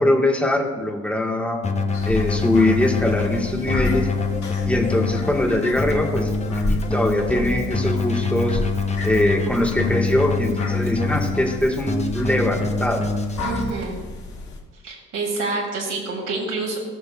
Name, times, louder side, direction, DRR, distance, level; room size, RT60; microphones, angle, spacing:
voice 1, 0.0-1.6 2.0-4.1 4.7-6.3 6.7-8.6 9.0-13.1, left 1 dB, 5° left, 1 dB, 1.5 m, -22 dB
Keyboard (musical), 1.6-13.7, left 4 dB, 20° left, 0.9 m, -25 dB
sound 1, 1.9-14.6, left 2 dB, 65° left, 2.1 m, -33 dB
voice 2, 13.4-14.0 14.8-16.8, right 3 dB, 75° right, -2 dB, 2.9 m, -27 dB
19.5 x 6.6 x 2.4 m, 1.4 s
cardioid pair, 90°, 30 cm